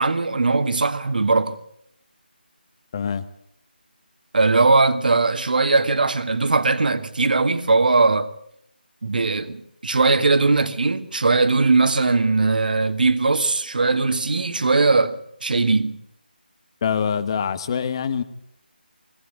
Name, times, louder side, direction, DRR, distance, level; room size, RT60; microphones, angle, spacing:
voice 1, 0.0-1.6 4.3-8.3 9.0-16.0, right 3 dB, 55° right, 1.8 m, -19 dB
voice 2, 2.9-3.2 16.8-18.2, left 7 dB, 30° left, 1.2 m, -24 dB
21.0 x 17.5 x 8.1 m
figure-of-eight pair, 160°, 6 cm